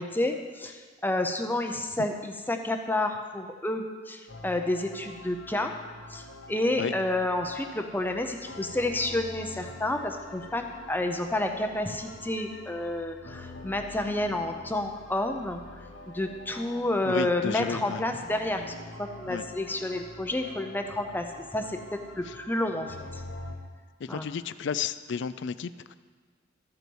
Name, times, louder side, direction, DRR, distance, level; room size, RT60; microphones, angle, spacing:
voice 1, 0.0-5.7 6.1-15.6 16.1-18.6 19.0-23.2 24.1-24.3, left 1 dB, 10° left, 5 dB, 0.6 m, -30 dB
sound 1, 4.3-23.6, left 1 dB, 90° left, 1.2 m, -45 dB
voice 2, 17.0-18.0 19.2-19.4 22.3-22.4 24.0-25.9, left 6 dB, 65° left, 15 dB, 0.4 m, -32 dB
13.5 x 8.0 x 4.7 m, 1.5 s
head